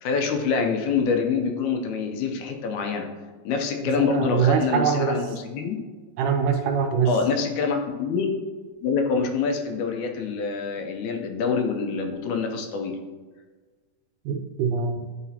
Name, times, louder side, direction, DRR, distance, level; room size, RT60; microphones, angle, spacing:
voice 1, 0.0-3.1 3.4-5.8 7.1-8.3 8.8-13.0, left 5 dB, 75° left, 4 dB, 2.0 m, -26 dB
voice 2, 4.0-5.3 6.2-7.1 14.3-15.0, right 7 dB, 80° right, 5 dB, 2.2 m, -23 dB
10.0 x 4.8 x 2.8 m, 1.4 s
omnidirectional pair, 3.6 m